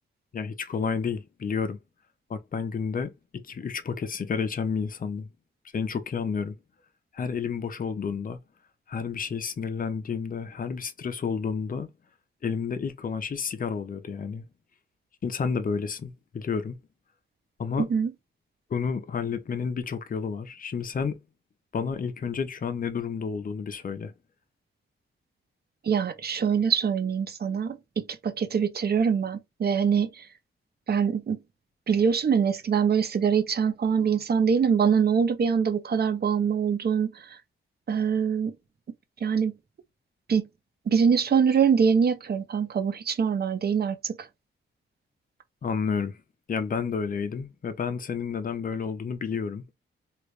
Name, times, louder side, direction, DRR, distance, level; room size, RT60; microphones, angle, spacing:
voice 1, 0.3-1.8 2.3-5.3 5.7-6.6 7.1-8.4 8.9-11.9 12.4-14.4 15.2-16.8 17.6-17.9 18.7-21.2 21.7-24.1 45.6-46.2 46.5-49.6, left 6 dB, 45° left, 0.6 m, -30 dB
voice 2, 17.8-18.1 25.8-30.2 30.9-31.4 31.9-37.1 37.9-38.6 39.2-39.5 40.3-40.5 40.9-44.1, right 6 dB, 50° right, 0.6 m, -24 dB
3.1 x 2.4 x 3.2 m
cardioid pair, 95°, 21 cm